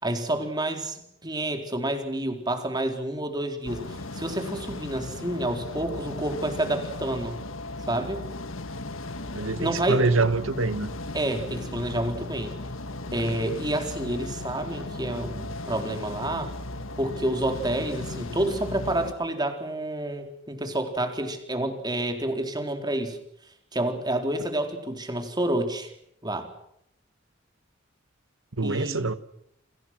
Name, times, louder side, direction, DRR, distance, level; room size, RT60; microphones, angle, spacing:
voice 1, 0.0-7.4 7.9-8.2 9.6-10.0 11.1-12.5 13.1-16.5 17.0-23.2 23.7-25.9 26.2-26.5 28.6-29.0, right 1 dB, 20° right, 4.1 m, -29 dB
sound 1, 3.6-19.1, left 2 dB, 85° left, 1.6 m, -36 dB
voice 2, 9.3-10.9 28.6-29.2, right 3 dB, 80° right, 1.6 m, -25 dB
30.0 x 26.5 x 6.2 m
head